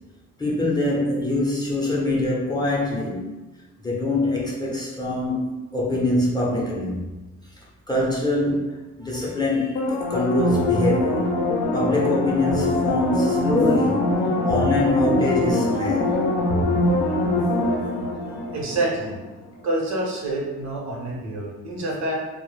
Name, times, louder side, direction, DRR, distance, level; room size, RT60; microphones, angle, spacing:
voice 1, 0.4-3.3 3.8-7.0 7.9-11.3 11.7-14.1 14.4-16.1 17.1-17.2 17.7-18.0 18.3-18.4, left 2 dB, 15° left, -4 dB, 0.5 m, -24 dB
sound 1, 9.8-19.1 19.5-19.6, left 1 dB, 70° left, 0.5 m, -23 dB
voice 2, 18.5-19.2 19.6-22.2, right 2 dB, 65° right, -1 dB, 0.7 m, -27 dB
2.0 x 2.0 x 3.1 m, 1.1 s
cardioid pair, 90°, 30 cm